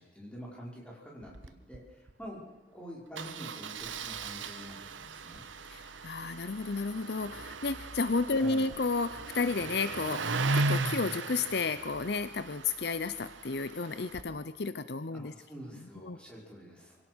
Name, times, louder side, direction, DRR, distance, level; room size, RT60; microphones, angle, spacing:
voice 1, 0.0-2.4 2.7-5.4 8.3-8.7 15.1-17.0, equal, 5° left, -3 dB, 5.4 m, -47 dB
Engine starting, 1.2-1.5 1.7-1.8 2.1-2.3 3.2-14.2, right 3 dB, 80° right, 1.2 m, -37 dB
voice 2, 5.7-15.3 16.0-16.2, left 4 dB, 55° left, 13 dB, 0.7 m, -32 dB
24.5 x 17.5 x 6.2 m, 1.3 s
head